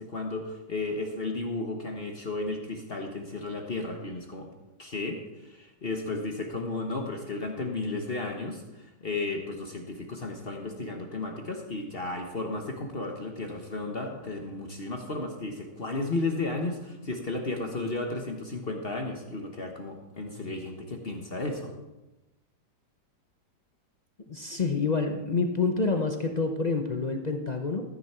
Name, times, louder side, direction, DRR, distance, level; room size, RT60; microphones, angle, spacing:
voice 1, 0.0-4.5 4.8-21.7, left 2 dB, 35° left, 3 dB, 1.2 m, -34 dB
voice 2, 24.3-27.8, left 4 dB, 65° left, 5 dB, 0.4 m, -27 dB
13.5 x 10.0 x 4.4 m, 1.0 s
omnidirectional pair, 1.9 m